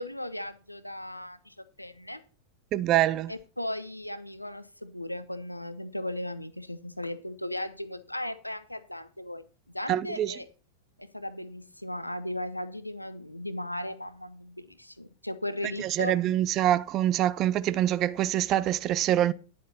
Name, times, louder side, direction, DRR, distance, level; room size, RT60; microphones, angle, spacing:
voice 1, 0.0-2.2 3.3-10.5 11.0-16.2, left 1 dB, 85° left, 0.7 m, -37 dB
voice 2, 2.7-3.3 9.9-10.3 15.8-19.3, right 12 dB, 35° right, 0.5 m, -25 dB
10.5 x 7.3 x 4.2 m
figure-of-eight pair, 90°, 0 cm